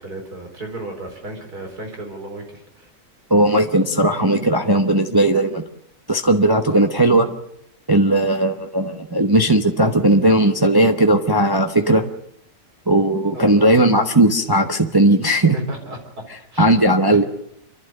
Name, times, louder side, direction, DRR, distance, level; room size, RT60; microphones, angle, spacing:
voice 1, 0.0-2.9 6.7-6.9 13.3-13.5 15.5-16.0 16.5-16.7 17.1-17.2, right 1 dB, 75° right, 2 dB, 4.6 m, -34 dB
voice 2, 3.3-5.6 6.1-7.3 7.9-12.0 12.9-15.6 16.6-17.2, right 1 dB, 15° right, 5 dB, 0.9 m, -16 dB
29.5 x 12.0 x 7.9 m, 0.74 s
omnidirectional pair, 1.6 m